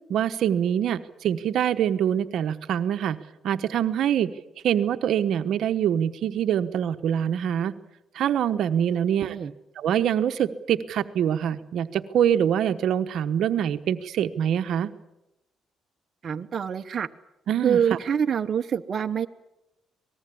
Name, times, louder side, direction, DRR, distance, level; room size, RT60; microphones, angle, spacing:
voice 1, 0.1-3.2 3.4-4.3 4.6-7.7 8.1-9.4 9.8-14.9 17.5-17.8, right 9 dB, 75° right, 10 dB, 1.1 m, -24 dB
voice 2, 8.9-9.5 16.2-17.1 17.6-19.3, right 8 dB, 50° right, 7 dB, 1.0 m, -26 dB
26.0 x 19.5 x 8.5 m, 0.91 s
cardioid pair, 90°, 0 cm